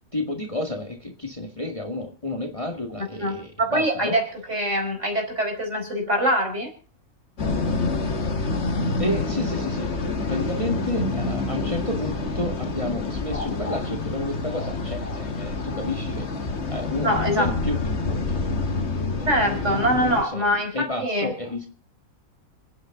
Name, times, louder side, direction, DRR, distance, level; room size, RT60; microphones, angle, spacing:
voice 1, 0.1-4.1 9.0-9.9 10.3-16.3 16.7-18.5 19.2-21.7, left 2 dB, 20° left, 3 dB, 2.0 m, -31 dB
voice 2, 3.0-6.7 17.0-17.5 19.3-21.3, equal, 55° right, 2 dB, 5.1 m, -24 dB
sound 1, 7.4-20.2, left 3 dB, 50° left, 1.9 m, -27 dB
27.0 x 9.1 x 3.8 m, 0.39 s
omnidirectional pair, 1.5 m